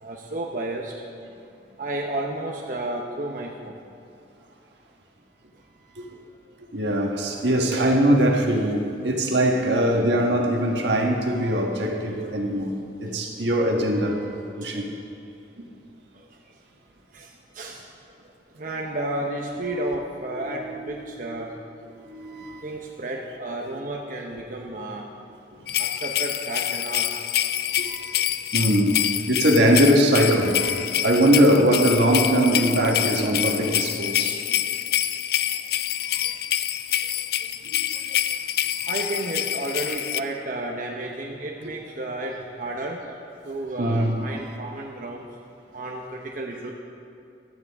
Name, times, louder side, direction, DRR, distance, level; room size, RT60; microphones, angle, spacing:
voice 1, 0.0-0.9 1.8-3.8 7.1-7.2 17.1-17.3 17.5-17.8 18.6-21.5 22.6-25.1 25.8-27.2 38.9-43.1 43.4-45.3 45.7-46.7, right 2 dB, 50° right, 0 dB, 0.9 m, -32 dB
voice 2, 6.7-14.9 15.6-15.7 20.4-21.3 22.0-22.6 27.9-28.1 28.5-34.4 36.1-36.2 37.6-37.8 43.8-44.2, right 1 dB, 80° right, 1 dB, 1.5 m, -22 dB
sound 1, 25.7-40.2, left 11 dB, 60° left, 0.4 m, -26 dB
15.5 x 12.0 x 3.6 m, 2.6 s
head